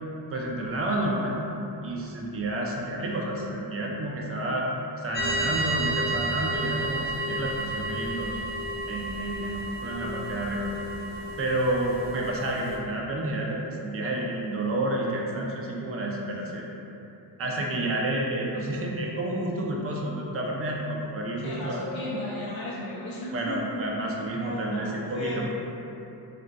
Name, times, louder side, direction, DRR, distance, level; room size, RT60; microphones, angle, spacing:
voice 1, 0.3-1.4 1.8-4.7 5.0-8.3 8.9-10.7 11.4-16.6 17.4-21.8 23.3-25.5, right 1 dB, 35° right, -2 dB, 0.5 m, -30 dB
sound 1, 5.1-12.8, right 1 dB, 25° left, 0.5 m, -31 dB
voice 2, 17.5-17.8 21.4-23.9 24.2-25.5, left 2 dB, 65° left, -7 dB, 0.7 m, -35 dB
3.6 x 2.5 x 2.2 m, 2.9 s
cardioid pair, 70°, 41 cm